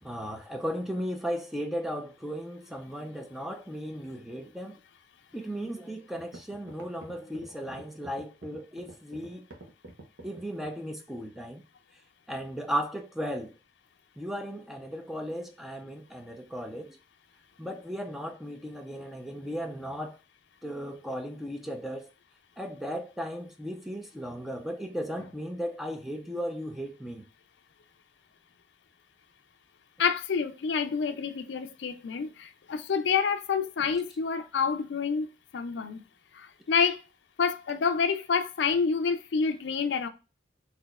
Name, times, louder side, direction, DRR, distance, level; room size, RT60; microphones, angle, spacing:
voice 1, 0.0-4.8 5.3-9.5 10.2-11.6 12.3-13.5 14.2-17.0 17.6-20.2 20.6-22.1 22.6-27.3, equal, ahead, 0.4 m, -36 dB
sound 1, 6.2-10.8, right 2 dB, 70° right, 0.9 m, -47 dB
voice 2, 30.0-36.0 36.3-37.0 37.4-40.1, left 6 dB, 65° left, 0.4 m, -28 dB
4.0 x 2.8 x 2.3 m
head